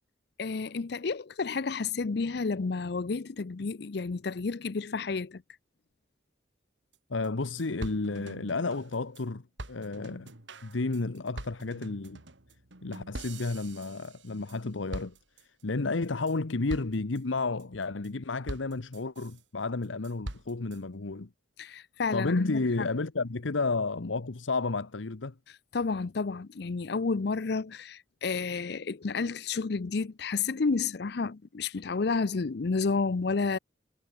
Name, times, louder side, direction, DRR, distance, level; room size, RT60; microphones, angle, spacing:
voice 1, 0.4-5.4 21.6-22.9 25.7-33.6, left 4 dB, 55° left, 0.5 m, -31 dB
sound 1, 6.9-7.0 7.2-7.3 7.6-9.2 9.6-14.6 14.9-15.6 16.0-16.3 16.7-17.2 17.6-18.1 18.5-19.4 19.8-20.8, right 1 dB, 75° right, 3.1 m, -43 dB
voice 2, 7.1-10.3 10.6-12.2 12.8-15.1 15.6-21.3 22.1-25.3, left 3 dB, 85° left, 1.0 m, -31 dB
head